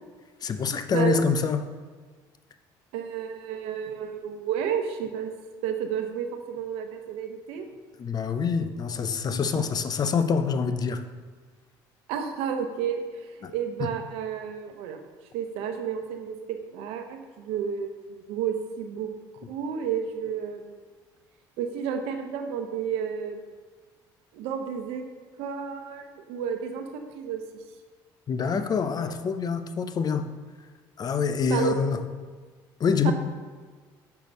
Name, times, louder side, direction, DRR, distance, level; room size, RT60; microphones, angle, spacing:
voice 1, 0.4-1.7 8.0-11.0 13.4-13.5 28.3-30.3 31.0-32.0 32.8-33.1, left 6 dB, 40° left, 10 dB, 0.6 m, -26 dB
voice 2, 2.9-5.3 5.6-7.7 8.6-8.7 9.3-9.6 12.1-15.0 15.3-19.1 19.5-20.8 21.6-23.4 24.3-25.0 25.4-27.4 31.5-31.8 33.0-33.1, right 8 dB, 80° right, 5 dB, 0.8 m, -31 dB
6.9 x 4.7 x 5.2 m, 1.5 s
supercardioid pair, 80°, 10 cm